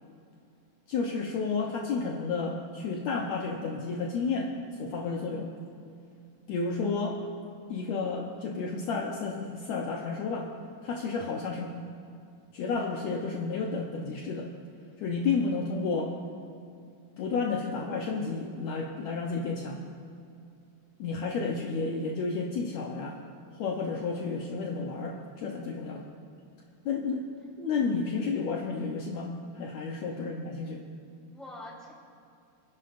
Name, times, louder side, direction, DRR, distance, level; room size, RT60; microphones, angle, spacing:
voice 1, 0.9-4.5 4.8-5.5 6.5-7.2 7.7-10.5 10.8-11.8 12.5-14.5 15.0-16.1 17.2-19.8 21.0-23.2 23.6-26.1 26.9-27.2 27.6-30.8, left 4 dB, 70° left, 0 dB, 1.9 m, -31 dB
voice 2, 27.0-27.3 30.1-30.3 31.2-31.9, left 1 dB, ahead, -5 dB, 3.1 m, -47 dB
28.0 x 10.5 x 2.6 m, 2.6 s
omnidirectional pair, 3.6 m